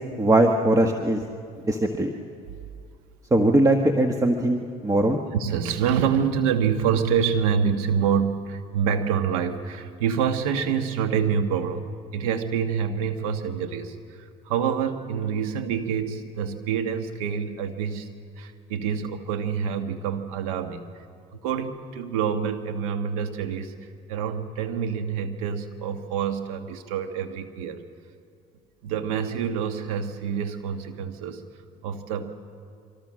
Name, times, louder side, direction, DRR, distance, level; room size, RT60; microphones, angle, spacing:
voice 1, 0.2-1.2 1.7-2.1 3.3-5.2, right 1 dB, 20° right, 4 dB, 1.5 m, -20 dB
voice 2, 5.3-11.8 12.1-18.1 18.4-20.9 21.3-23.7 24.1-27.8 28.8-31.4 31.8-32.4, right 7 dB, 90° right, 7 dB, 1.6 m, -26 dB
25.0 x 25.0 x 6.4 m, 2.2 s
supercardioid pair, 80°, 18 cm